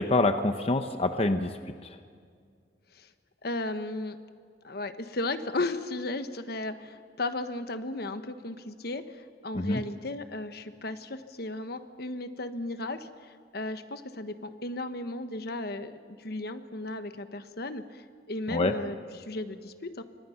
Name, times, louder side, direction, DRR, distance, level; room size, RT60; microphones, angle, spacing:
voice 1, 0.0-1.5 1.8-2.0 9.5-9.8 18.5-18.7, left 2 dB, 35° left, 8 dB, 0.8 m, -26 dB
voice 2, 3.4-4.2 4.6-20.0, left 2 dB, 60° left, 9 dB, 1.2 m, -35 dB
29.0 x 25.0 x 5.8 m, 2.1 s
head